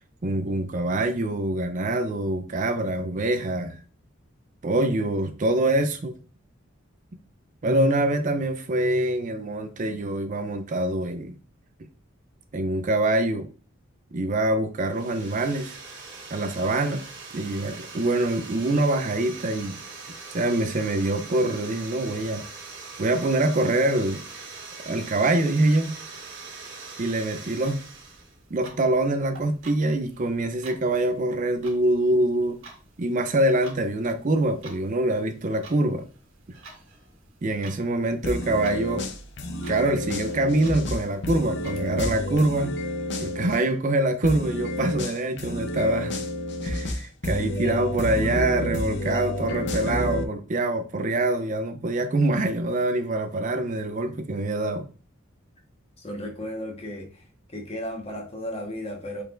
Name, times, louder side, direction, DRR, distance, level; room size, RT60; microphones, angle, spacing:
voice 1, 0.2-3.8 4.6-6.1 7.6-11.3 12.5-13.5 14.1-15.8 16.3-17.0 17.3-19.8 20.3-22.4 23.0-24.2 24.9-25.9 27.0-27.8 28.5-32.6 33.0-36.0 37.4-39.1 39.7-42.8 43.2-46.2 46.6-54.9, right 1 dB, 40° right, 0.4 m, -25 dB
sound 1, 14.9-28.3, right 4 dB, 55° right, 1.3 m, -42 dB
Clock, 27.4-41.9, right 2 dB, 80° right, 1.6 m, -50 dB
sound 2, 38.2-43.6 44.2-50.2, left 1 dB, 55° left, 0.7 m, -30 dB
voice 2, 56.0-57.2 57.5-59.2, equal, 30° left, 1.2 m, -34 dB
5.4 x 3.9 x 2.5 m
head